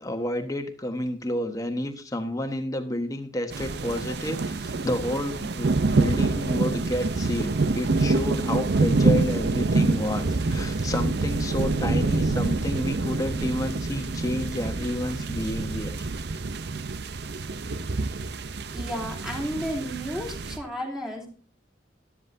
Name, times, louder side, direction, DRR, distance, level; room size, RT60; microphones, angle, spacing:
voice 1, 0.0-16.1, left 1 dB, 20° left, 6 dB, 1.3 m, -30 dB
sound 1, 3.5-20.6, right 3 dB, 60° right, 0.7 m, -26 dB
voice 2, 18.7-21.3, equal, 5° right, -1 dB, 3.3 m, -32 dB
13.0 x 12.5 x 2.7 m, 0.37 s
head